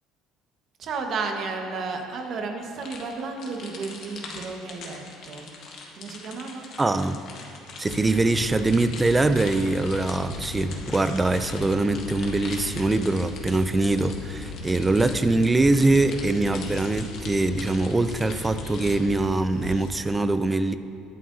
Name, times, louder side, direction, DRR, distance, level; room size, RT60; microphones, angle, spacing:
voice 1, 0.8-5.5 6.0-6.7, right 4 dB, 45° right, 3 dB, 1.3 m, -33 dB
sound 1, 2.8-19.0, left 4 dB, 50° left, 1.6 m, -42 dB
voice 2, 6.8-7.2 7.8-20.8, right 2 dB, 15° right, 11 dB, 0.3 m, -23 dB
sound 2, 7.8-19.9, left 4 dB, 80° left, 0.9 m, -38 dB
21.0 x 7.5 x 2.7 m, 2.8 s
cardioid pair, 145°, 0 cm